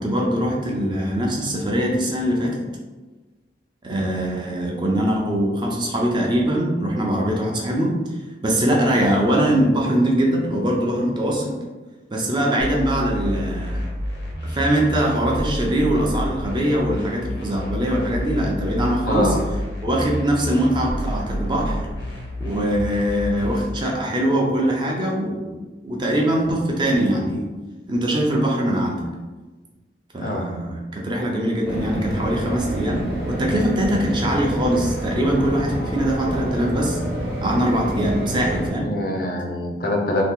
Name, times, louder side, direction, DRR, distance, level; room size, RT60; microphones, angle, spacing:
voice 1, 0.0-2.7 3.8-7.9 8.4-11.6 12.1-13.8 14.4-19.4 19.8-21.9 22.4-25.5 25.8-27.5 27.9-29.1 30.1-37.0 37.4-38.9, right 1 dB, 25° right, -1 dB, 0.5 m, -22 dB
sound 1, 12.6-23.6, equal, 80° left, 0.8 m, -29 dB
voice 2, 19.0-19.4 30.2-30.5 38.8-40.2, left 1 dB, 50° left, 1 dB, 0.5 m, -24 dB
sound 2, 31.6-38.7, right 1 dB, 60° right, 0.8 m, -27 dB
2.8 x 2.3 x 3.6 m, 1.2 s
head